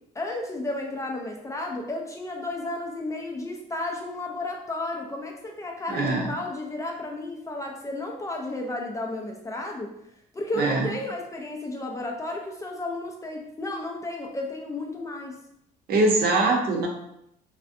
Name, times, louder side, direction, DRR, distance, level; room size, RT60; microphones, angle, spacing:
voice 1, 0.1-9.9 10.3-15.4, left 2 dB, 20° left, 1 dB, 0.3 m, -33 dB
voice 2, 5.9-6.3 10.6-10.9 15.9-16.9, right 2 dB, 65° right, 0 dB, 0.7 m, -22 dB
2.4 x 2.1 x 2.5 m, 0.78 s
cardioid pair, 110°, 17 cm